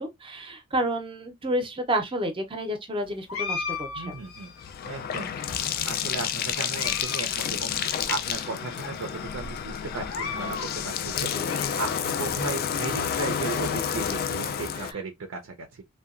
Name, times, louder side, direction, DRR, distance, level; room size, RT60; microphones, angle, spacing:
voice 1, 0.0-4.1 11.1-11.5, right 1 dB, 25° right, 0.6 m, -30 dB
sound 1, 3.3-4.7 5.4-6.1 6.5-7.3 7.5-7.6 8.3-8.4 8.8-8.9 9.9-10.7 11.2-12.1, left 5 dB, 85° left, 0.6 m, -36 dB
Bathtub (filling or washing), 3.5-14.9, left 8 dB, 45° left, 0.3 m, -30 dB
voice 2, 4.0-4.5 4.8-15.8, right 4 dB, 70° right, 0.5 m, -36 dB
2.8 x 2.2 x 2.4 m
head